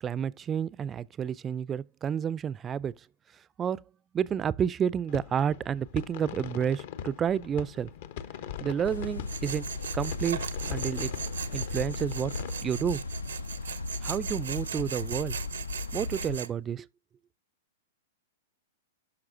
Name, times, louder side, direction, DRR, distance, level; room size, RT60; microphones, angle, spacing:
voice 1, 0.0-3.1 3.6-3.8 4.1-7.9 8.6-10.4 10.7-11.1 11.5-13.0 14.0-15.4 15.9-16.9, right 8 dB, 25° right, 0.3 m, -30 dB
sound 1, 5.1-12.5, left 9 dB, 60° left, 0.8 m, -42 dB
sound 2, 8.8-16.4, left 3 dB, 85° left, 0.4 m, -36 dB
Tools, 9.3-16.5, right 7 dB, 75° right, 0.6 m, -39 dB
11.0 x 5.9 x 2.5 m
hypercardioid pair, 110°, 0 cm